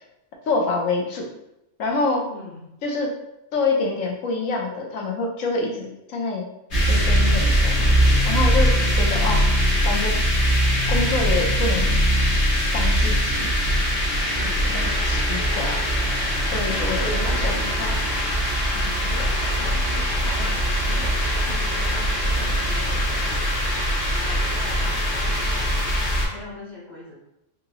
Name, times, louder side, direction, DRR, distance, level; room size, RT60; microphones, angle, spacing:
voice 1, 0.5-1.3 1.8-2.3 2.8-3.1 3.5-6.5 6.9-7.9 8.2-10.2 10.9-11.9 12.7-13.5 14.7-15.8 16.5-18.1, left 3 dB, 85° left, 0 dB, 1.2 m, -26 dB
voice 2, 2.2-2.7 8.8-9.0 14.3-14.8 15.2-15.6 16.7-17.8 18.7-27.1, left 2 dB, 40° left, -7 dB, 0.8 m, -40 dB
sound 1, 6.7-26.3, equal, 60° left, 1.4 m, -21 dB
3.9 x 2.7 x 2.8 m, 0.88 s
omnidirectional pair, 1.3 m